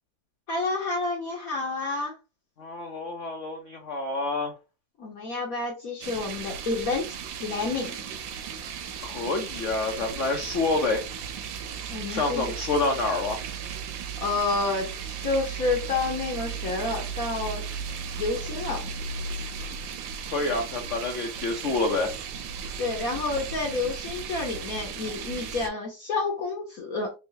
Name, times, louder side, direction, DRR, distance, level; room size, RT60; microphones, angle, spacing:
voice 1, 0.5-2.1 5.0-7.0 7.4-8.0 11.9-12.5 14.2-17.6 18.1-18.9 22.8-27.1, left 3 dB, 55° left, 1 dB, 1.0 m, -29 dB
voice 2, 2.6-4.5 9.0-11.0 12.1-13.4 20.3-22.1, left 3 dB, 80° left, 2 dB, 0.6 m, -27 dB
sound 1, 6.0-25.7, right 6 dB, 70° right, 1.3 m, -36 dB
3.8 x 3.5 x 2.7 m, 0.29 s
omnidirectional pair, 2.3 m